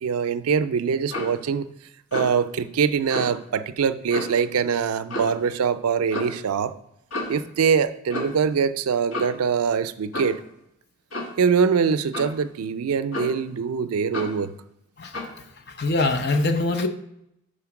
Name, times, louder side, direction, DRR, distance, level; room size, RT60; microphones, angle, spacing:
voice 1, 0.0-1.7 2.1-6.7 7.3-10.4 11.4-14.5, right 6 dB, 85° right, 12 dB, 0.4 m, -23 dB
Clock, 1.1-1.4 2.1-2.4 3.1-3.3 4.1-4.4 5.1-5.4 6.1-6.4 7.1-7.4 8.1-8.4 9.1-9.4 10.1-10.4 11.1-11.4 12.1-12.4 13.1-13.5 14.1-14.4 15.1-15.4, left 1 dB, 65° left, 2.0 m, -31 dB
voice 2, 15.0-16.9, left 2 dB, 50° left, 7 dB, 0.6 m, -24 dB
5.1 x 4.3 x 5.8 m, 0.79 s
head